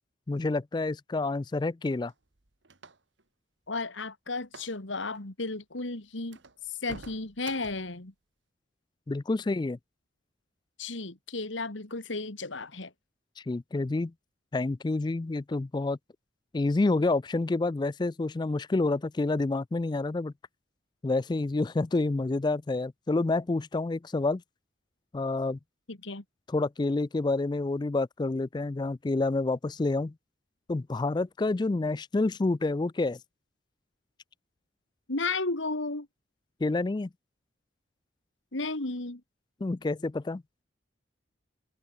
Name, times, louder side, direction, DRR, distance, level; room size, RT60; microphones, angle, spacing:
voice 1, 0.3-2.1 9.1-9.8 13.5-14.1 14.5-16.0 16.5-20.3 21.0-24.4 25.1-25.6 26.5-30.1 30.7-33.2 36.6-37.1 39.6-40.4, left 2 dB, 20° left, 0.3 m, -28 dB
sound 1, 1.9-3.2 4.4-4.8 5.0-5.2 5.8-5.9 6.3-8.0, right 3 dB, 70° right, 1.9 m, -49 dB
voice 2, 3.7-6.4 6.7-8.1 10.8-12.9 25.9-26.2 35.1-36.1 38.5-39.2, left 3 dB, 75° left, 2.3 m, -34 dB
head